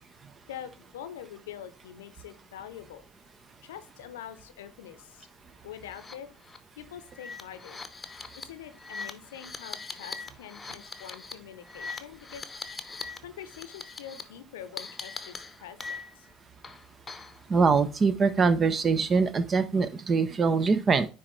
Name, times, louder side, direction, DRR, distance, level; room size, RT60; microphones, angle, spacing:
voice 1, 0.5-3.0 3.6-5.3 5.6-6.3 6.8-7.8 8.4-12.9 13.2-16.3, left 10 dB, 85° left, 11 dB, 0.7 m, -45 dB
sound 1, 5.9-6.1 6.5-6.6 7.1-13.2 13.4-14.2 14.8-16.3 16.6-17.4, left 4 dB, 25° left, 0.9 m, -41 dB
voice 2, 17.5-21.1, right 4 dB, 35° right, 13 dB, 0.7 m, -23 dB
9.6 x 3.3 x 3.2 m, 0.33 s
hypercardioid pair, 70°, 0 cm